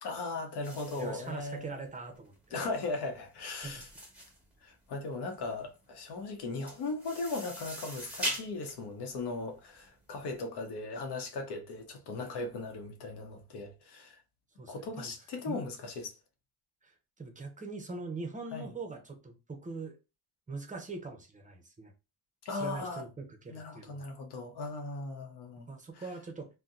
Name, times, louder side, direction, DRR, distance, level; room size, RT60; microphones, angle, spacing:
voice 1, 0.0-1.8 2.5-3.9 4.6-14.2 14.7-16.2 18.5-18.7 22.4-23.0 23.5-25.7 25.9-26.1, left 3 dB, 85° left, 0.8 m, -38 dB
sound 1, 0.6-10.3, equal, 5° right, 1.1 m, -42 dB
voice 2, 1.0-2.3 3.6-3.8 14.6-15.1 15.5-15.6 16.8-20.0 20.5-21.9 22.5-24.1 25.7-26.5, right 3 dB, 20° right, 0.7 m, -42 dB
2.7 x 2.2 x 3.6 m
cardioid pair, 125°, 39 cm